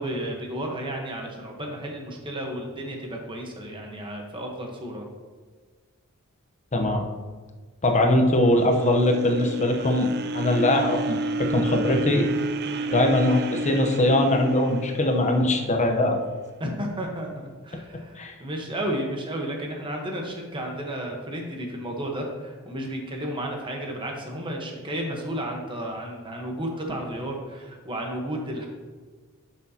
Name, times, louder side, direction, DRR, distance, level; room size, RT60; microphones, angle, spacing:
voice 1, 0.0-5.0 12.6-13.0 16.6-28.7, right 1 dB, 25° right, 1 dB, 1.1 m, -33 dB
voice 2, 6.7-7.0 7.8-10.1 10.3-12.3 12.9-16.2 18.2-18.3, left 1 dB, 35° left, 4 dB, 0.8 m, -21 dB
sound 1, 7.9-16.1, right 2 dB, 50° right, 0.4 m, -31 dB
11.0 x 6.2 x 2.8 m, 1.4 s
head